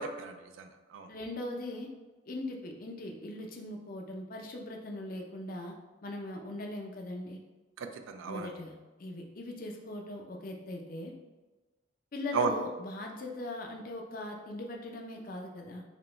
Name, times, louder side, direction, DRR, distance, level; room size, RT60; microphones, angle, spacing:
voice 1, 0.0-1.1 7.8-8.5 12.3-12.5, right 5 dB, 75° right, 7 dB, 0.4 m, -34 dB
voice 2, 1.1-1.9 2.3-5.7 6.0-7.4 8.3-11.1 12.1-15.8, left 1 dB, 45° left, 2 dB, 0.5 m, -40 dB
4.9 x 2.2 x 3.1 m, 1.2 s
head